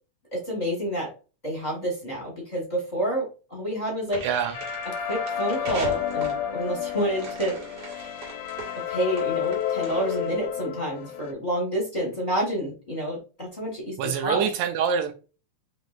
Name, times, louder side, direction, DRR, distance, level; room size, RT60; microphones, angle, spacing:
voice 1, 0.3-1.1 1.4-4.2 5.0-7.6 7.9-8.1 8.9-14.0 14.2-14.5, right 1 dB, 30° left, 0.8 m, -29 dB
sound 1, 4.1-10.5, right 3 dB, 55° right, 2.1 m, -40 dB
voice 2, 4.2-4.6 14.0-15.1, right 7 dB, 80° right, 1.8 m, -25 dB
sound 2, 4.5-11.3, left 9 dB, 85° left, 2.1 m, -30 dB
5.1 x 3.2 x 2.4 m
omnidirectional pair, 3.6 m